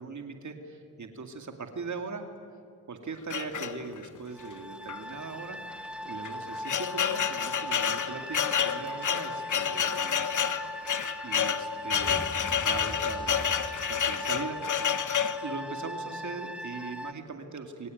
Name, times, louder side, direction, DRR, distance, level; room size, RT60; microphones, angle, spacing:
voice 1, 0.0-2.2 2.9-5.6 6.0-10.3 10.6-10.8 11.2-14.9 15.4-17.9, right 4 dB, 55° right, 5 dB, 2.4 m, -40 dB
sound 1, 3.3-4.2 4.9-5.0 5.3-5.4 6.1-15.4, left 8 dB, 60° left, 1.4 m, -29 dB
sound 2, 4.3-17.1, equal, 5° right, 1.4 m, -39 dB
sound 3, 11.9-15.1, left 2 dB, 15° left, 1.0 m, -43 dB
27.0 x 23.5 x 9.3 m, 2.6 s
cardioid pair, 75°, 35 cm